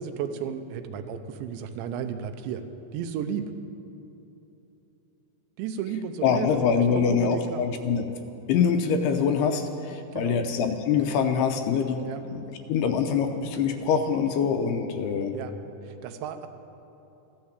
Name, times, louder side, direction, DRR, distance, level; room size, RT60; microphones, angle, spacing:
voice 1, 0.0-2.6 2.9-3.5 5.6-7.6 10.1-10.4 12.0-12.2 15.3-15.5 15.8-16.5, right 8 dB, 90° right, 8 dB, 3.2 m, -33 dB
voice 2, 6.2-8.1 8.5-12.1 12.3-15.4, left 6 dB, 80° left, 6 dB, 2.6 m, -24 dB
14.5 x 12.0 x 8.1 m, 3.0 s
omnidirectional pair, 5.0 m